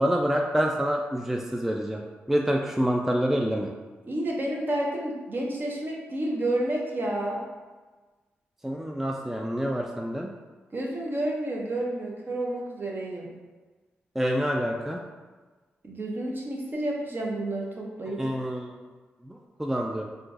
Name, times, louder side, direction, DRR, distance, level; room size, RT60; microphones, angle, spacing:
voice 1, 0.0-2.0 2.3-3.7 8.6-10.3 14.2-15.0 18.2-18.8 19.2-20.1, equal, 5° right, 1 dB, 0.3 m, -27 dB
voice 2, 4.0-7.4 10.7-13.3 15.8-18.2, right 1 dB, 45° right, -2 dB, 0.8 m, -30 dB
3.7 x 2.6 x 2.4 m, 1.3 s
supercardioid pair, 45°, 5 cm